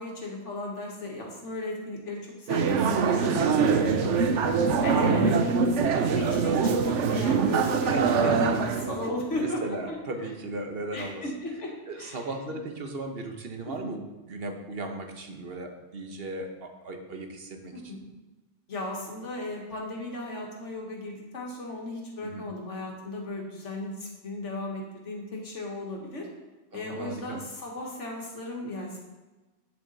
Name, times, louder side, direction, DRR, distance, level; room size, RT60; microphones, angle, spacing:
voice 1, 0.0-4.2 4.8-5.3 5.9-10.0 10.9-12.3 13.7-13.9 17.7-18.0 18.7-26.3 26.7-29.0, left 2 dB, 85° left, 0 dB, 2.0 m, -35 dB
sound 1, 2.5-9.1, right 5 dB, 80° right, 1.1 m, -24 dB
voice 2, 3.4-4.2 5.0-5.7 7.9-8.4 9.3-11.2 11.9-18.0 22.2-22.5 26.7-27.4, right 2 dB, 55° right, 4 dB, 1.3 m, -37 dB
9.3 x 7.2 x 4.1 m, 1.2 s
omnidirectional pair, 1.2 m